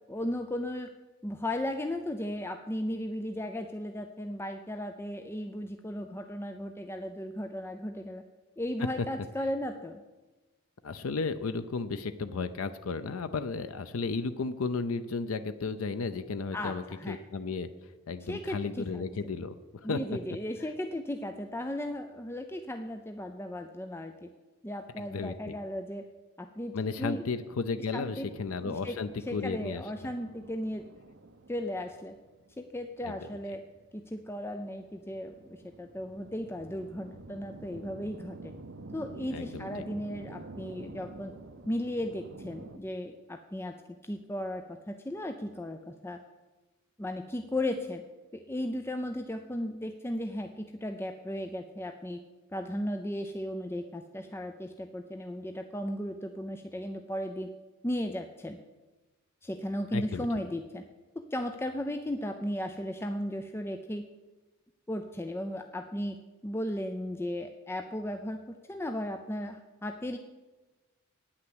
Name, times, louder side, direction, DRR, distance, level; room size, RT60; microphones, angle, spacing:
voice 1, 0.1-0.9 1.2-8.2 8.6-10.0 16.5-17.2 18.3-19.0 19.8-24.3 24.6-26.0 26.4-27.2 27.9-28.3 28.6-29.0 29.3-30.9 31.5-32.1 32.6-33.6 33.9-38.5 38.9-41.3 41.7-43.7 44.0-46.2 47.0-48.0 48.3-52.2 52.5-57.5 57.8-58.6 59.4-60.8 61.2-64.1 64.9-66.2 66.4-70.2, left 1 dB, 10° left, 6 dB, 0.5 m, -36 dB
voice 2, 10.8-20.0 20.6-20.7 25.0-25.5 26.7-29.8 33.0-33.3 39.3-39.7 59.9-60.3, left 4 dB, 90° left, 10 dB, 0.5 m, -34 dB
sound 1, 28.3-42.8, right 2 dB, 65° right, 0.7 m, -48 dB
9.4 x 8.7 x 7.9 m, 1.2 s
head